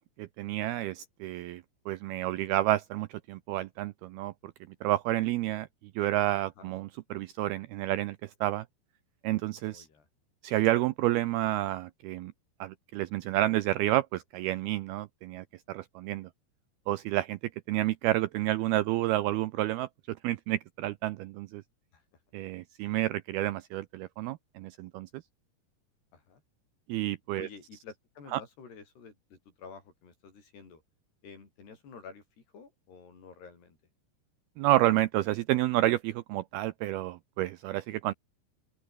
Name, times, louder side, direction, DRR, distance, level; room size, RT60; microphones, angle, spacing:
voice 1, 0.2-4.3 4.8-5.7 6.0-8.7 9.2-9.9 10.4-12.3 12.6-16.3 16.9-17.4 17.7-21.6 22.3-25.1 26.9-27.5 28.3-28.4 34.6-38.1, right 15 dB, 80° right, 2.3 m, -30 dB
voice 2, 9.6-10.1 21.9-22.0 26.1-26.4 27.4-30.8 31.2-33.8, left 5 dB, 65° left, 8.0 m, -50 dB
open air
omnidirectional pair, 5.1 m